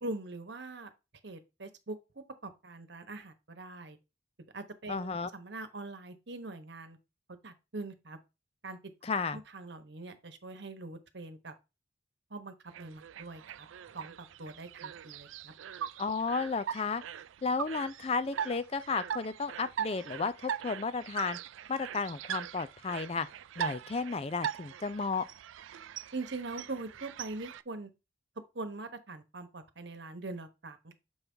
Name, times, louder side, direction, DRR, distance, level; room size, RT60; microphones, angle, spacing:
voice 1, 0.0-0.9 1.2-4.0 4.5-7.0 7.4-8.2 8.6-8.8 9.3-11.5 12.3-13.7 13.9-15.5 26.1-27.9 28.5-30.9, right 2 dB, 60° right, 1.1 m, -42 dB
voice 2, 4.9-5.3 9.0-9.4 16.0-17.0 17.4-21.4 21.7-23.3 23.6-25.2, left 4 dB, 30° left, 0.4 m, -33 dB
sound 1, 12.7-27.6, right 9 dB, 80° right, 0.4 m, -41 dB
7.0 x 5.5 x 3.4 m
head